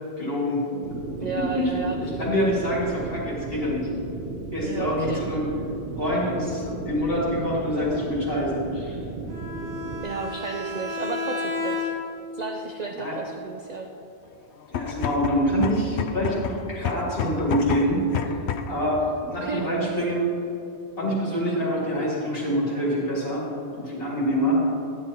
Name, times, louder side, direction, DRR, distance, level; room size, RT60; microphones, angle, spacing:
voice 1, 0.2-0.6 1.5-1.7 2.0-3.9 4.5-5.5 6.0-9.0 13.0-13.2 14.7-18.4 18.7-20.3 21.0-23.4 23.7-24.6, equal, 60° left, -6 dB, 2.3 m, -26 dB
sound 1, 0.8-10.0, right 4 dB, 70° right, 0.9 m, -35 dB
voice 2, 1.2-2.0 4.6-5.4 10.0-11.9 12.3-13.9 19.4-19.6, right 4 dB, 50° right, 3 dB, 0.6 m, -32 dB
Bowed string instrument, 9.3-12.3, left 3 dB, 90° right, 2.5 m, -31 dB
sound 2, 14.6-18.8, left 7 dB, 90° left, 0.9 m, -30 dB
10.5 x 9.8 x 2.9 m, 2.8 s
omnidirectional pair, 1.1 m